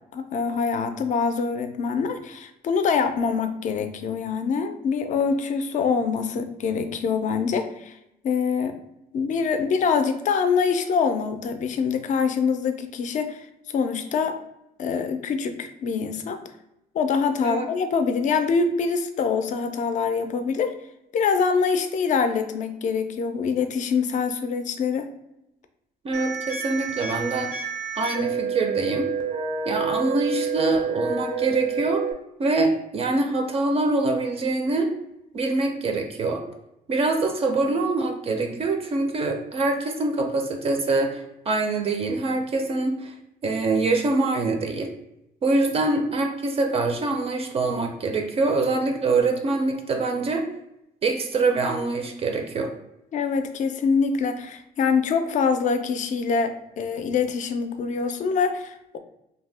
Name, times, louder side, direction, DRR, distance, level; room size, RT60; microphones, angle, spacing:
voice 1, 0.1-8.0 8.2-8.8 9.1-13.5 13.7-14.4 14.8-16.4 16.9-20.8 21.1-25.1 53.1-59.0, left 5 dB, 45° left, 8 dB, 0.4 m, -24 dB
voice 2, 26.0-27.6 28.0-29.1 29.7-32.1 32.4-34.9 35.3-36.4 36.9-43.1 43.4-44.9 45.4-50.4 51.0-52.7, right 3 dB, 35° right, 4 dB, 0.4 m, -24 dB
sound 1, 26.1-32.1, right 6 dB, 90° right, 0.6 m, -29 dB
2.7 x 2.1 x 3.2 m, 0.85 s
cardioid pair, 110°, 17 cm